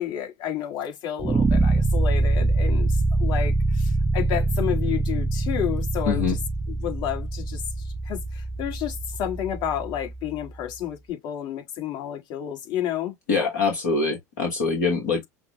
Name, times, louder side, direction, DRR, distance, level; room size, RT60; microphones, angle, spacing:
voice 1, 0.0-6.4 6.7-13.1, left 10 dB, 55° left, 1.6 m, -31 dB
sound 1, 1.2-10.3, right 2 dB, 15° right, 0.4 m, -24 dB
voice 2, 6.1-6.4 13.3-15.3, left 4 dB, 70° left, 1.2 m, -24 dB
5.6 x 2.0 x 3.0 m
hypercardioid pair, 75°, 9 cm